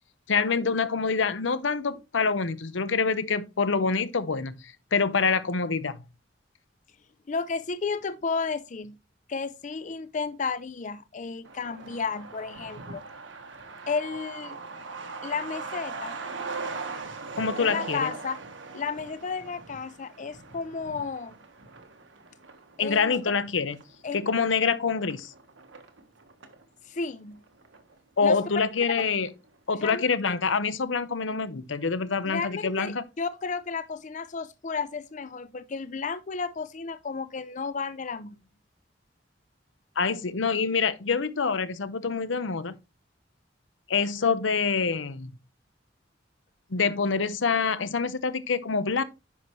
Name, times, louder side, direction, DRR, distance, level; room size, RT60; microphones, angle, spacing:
voice 1, 0.3-6.0 17.4-18.1 22.8-23.8 24.1-25.3 28.2-29.3 29.7-33.0 40.0-42.8 43.9-45.3 46.7-49.0, left 5 dB, 90° left, 0.8 m, -26 dB
voice 2, 7.3-9.0 9.3-13.0 13.9-14.6 15.2-16.2 17.6-18.4 18.7-21.3 22.8-23.2 24.0-24.2 26.9-27.4 28.2-28.4 29.0-29.1 29.8-30.3 32.3-38.4, left 5 dB, 40° left, 0.5 m, -33 dB
Truck, 11.4-26.6 27.0-27.1 27.3-28.2 28.5-28.6 28.9-29.3, right 4 dB, 85° right, 1.3 m, -40 dB
10.0 x 5.9 x 3.1 m
head